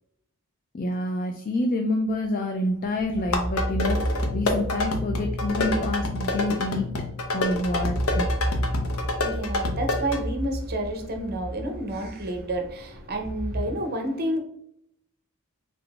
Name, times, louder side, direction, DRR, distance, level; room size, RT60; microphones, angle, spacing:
voice 1, 0.7-6.9 7.3-8.3, left 1 dB, 40° left, 4 dB, 0.3 m, -27 dB
sound 1, 2.5-13.6, equal, 5° left, 1.3 m, -32 dB
sound 2, 3.2-10.2, left 2 dB, 70° left, 0.7 m, -28 dB
voice 2, 8.7-14.4, right 1 dB, 45° right, 4 dB, 0.7 m, -30 dB
3.7 x 3.7 x 2.3 m, 0.74 s
head